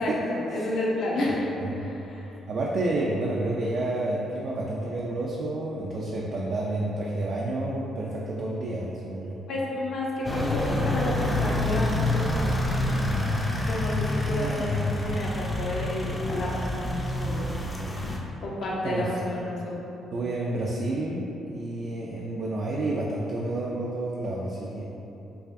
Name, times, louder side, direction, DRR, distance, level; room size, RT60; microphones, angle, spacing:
voice 1, 0.0-2.3 9.5-13.1 13.7-17.5 17.9-19.7, left 1 dB, 65° left, -4 dB, 0.7 m, -31 dB
voice 2, 2.5-9.4 14.2-14.9 18.8-19.1 20.1-24.8, right 2 dB, 60° right, -4 dB, 0.4 m, -30 dB
sound 1, 10.2-18.2, left 1 dB, 15° left, 0.4 m, -27 dB
4.6 x 2.4 x 2.6 m, 2.9 s
cardioid pair, 90°, 0 cm